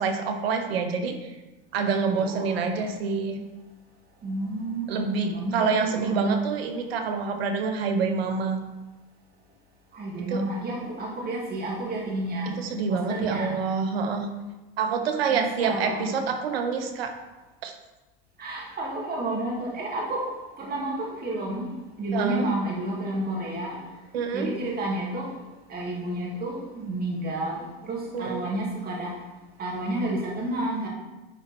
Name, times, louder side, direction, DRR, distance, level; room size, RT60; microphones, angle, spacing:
voice 1, 0.0-1.4 1.7-3.4 4.9-8.6 10.3-10.4 12.5-14.3 14.8-17.1 17.6-17.7 22.1-22.5 24.1-24.5 28.1-28.4, right 5 dB, 85° right, 6 dB, 1.2 m, -27 dB
voice 2, 2.2-2.9 4.2-6.2 9.9-12.6 12.9-13.6 15.3-16.2 18.4-20.3 20.6-21.7 22.0-23.8 24.3-25.3 25.7-29.1 29.6-30.9, right 1 dB, 30° right, -3 dB, 2.5 m, -31 dB
10.5 x 4.4 x 4.4 m, 1.1 s
supercardioid pair, 105°, 29 cm